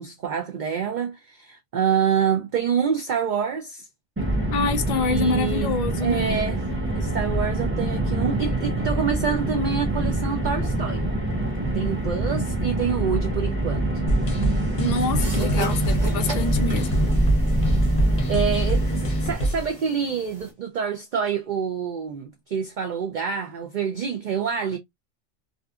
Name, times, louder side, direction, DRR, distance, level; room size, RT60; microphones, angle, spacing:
voice 1, 0.0-3.9 4.9-5.7 6.0-6.6 7.0-11.0 11.7-13.9 18.3-24.8, right 7 dB, 65° right, 0.5 m, -27 dB
Car, 4.2-19.3, right 1 dB, 15° right, 0.7 m, -25 dB
voice 2, 4.5-6.4 14.8-17.0, left 3 dB, 75° left, 0.3 m, -26 dB
sound 1, 14.1-19.7, right 1 dB, 40° left, 0.7 m, -27 dB
sound 2, 15.2-20.5, right 2 dB, 35° right, 1.1 m, -38 dB
2.5 x 2.4 x 2.3 m
omnidirectional pair, 1.3 m